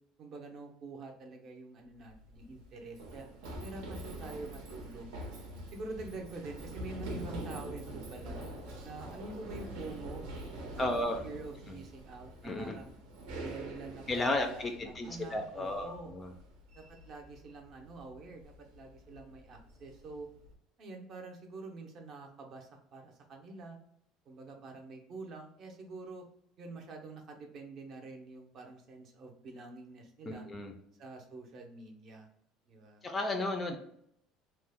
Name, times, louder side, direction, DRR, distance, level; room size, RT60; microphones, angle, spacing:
voice 1, 0.2-3.3 3.6-5.1 5.7-8.4 8.8-10.2 10.6-13.0 13.4-16.1 16.7-20.3 20.8-23.8 24.3-26.3 26.6-30.5 31.0-32.3 32.7-33.0, right 3 dB, 40° right, 3 dB, 0.6 m, -46 dB
Run, 2.0-20.5, right 1 dB, 90° right, 0.8 m, -45 dB
voice 2, 10.8-11.2 11.7-11.8 12.4-12.8 14.1-16.3 30.3-30.7 33.0-33.8, left 2 dB, 20° left, 4 dB, 0.3 m, -33 dB
2.9 x 2.1 x 3.3 m, 0.69 s
cardioid pair, 165°, 0 cm